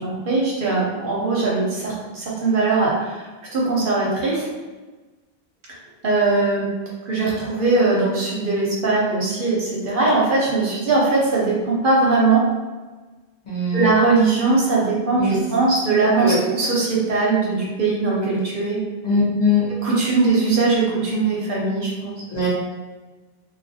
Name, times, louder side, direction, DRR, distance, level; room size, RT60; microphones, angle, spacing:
voice 1, 0.0-4.5 6.0-6.7 7.0-12.4 13.7-18.8 19.8-22.1, right 3 dB, 60° right, -5 dB, 0.7 m, -20 dB
voice 2, 13.5-13.9 15.2-15.4 16.2-16.4 19.0-19.7 22.3-22.5, left 2 dB, 45° left, -9 dB, 0.8 m, -20 dB
2.3 x 2.2 x 2.5 m, 1.3 s
omnidirectional pair, 1.0 m